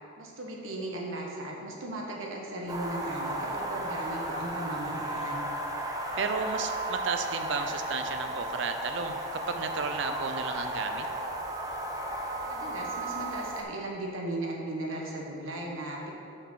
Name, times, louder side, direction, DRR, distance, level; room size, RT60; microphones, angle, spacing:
voice 1, 0.2-5.5 12.5-16.1, right 1 dB, 90° right, -1 dB, 1.2 m, -36 dB
sound 1, 2.7-13.6, right 1 dB, 20° right, 0.6 m, -34 dB
voice 2, 6.2-11.1, right 5 dB, 65° right, 7 dB, 0.5 m, -33 dB
6.1 x 5.0 x 6.3 m, 2.5 s
head